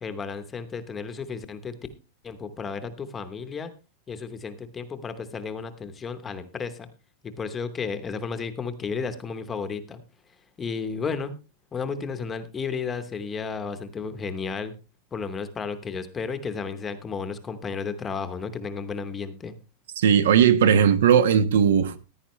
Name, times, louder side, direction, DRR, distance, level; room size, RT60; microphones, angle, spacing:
voice 1, 0.0-1.8 2.2-3.7 4.1-6.9 7.2-10.0 10.6-11.3 11.7-14.7 15.1-19.5, left 5 dB, 15° left, 0.9 m, -33 dB
voice 2, 20.0-22.0, right 8 dB, 80° right, 1.2 m, -18 dB
15.0 x 9.9 x 3.1 m
supercardioid pair, 175°, 0 cm